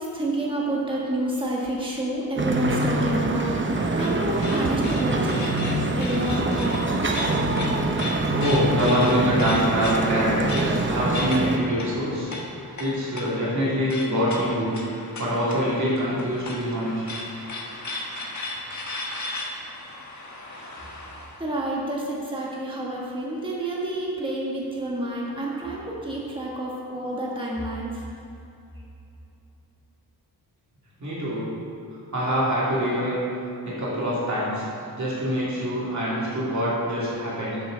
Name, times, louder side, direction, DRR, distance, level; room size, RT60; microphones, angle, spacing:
voice 1, 0.0-5.4 6.0-6.8 21.4-28.0, right 1 dB, 15° right, -4 dB, 1.5 m, -29 dB
sound 1, 2.4-11.6, right 2 dB, 30° right, 0.8 m, -25 dB
sound 2, 3.3-21.4, left 2 dB, 45° left, 1.4 m, -36 dB
voice 2, 8.3-12.3 12.8-17.0 31.0-31.5 32.1-33.2 33.6-34.7 35.0-37.6, equal, 45° right, -8 dB, 2.6 m, -25 dB
12.5 x 9.2 x 3.9 m, 2.9 s
wide cardioid pair, 175°, 38 cm